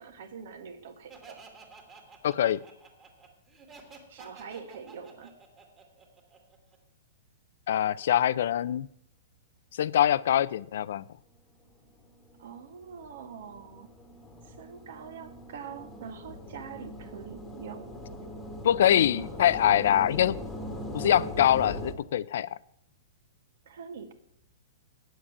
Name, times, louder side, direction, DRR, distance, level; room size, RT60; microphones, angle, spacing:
voice 1, 0.0-1.4 4.1-5.3 12.4-13.9 14.4-18.0 18.9-19.3 23.6-24.1, right 6 dB, 65° right, 8 dB, 1.6 m, -44 dB
Laughter, 1.1-6.8, right 4 dB, 15° right, 2.1 m, -52 dB
voice 2, 2.2-2.6 7.7-8.9 9.7-11.1 18.6-20.4 20.9-22.6, left 11 dB, 65° left, 19 dB, 0.4 m, -24 dB
sound 1, 11.8-21.9, equal, 10° left, 1.5 m, -41 dB
9.1 x 7.3 x 8.6 m, 0.72 s
hypercardioid pair, 155°, 0 cm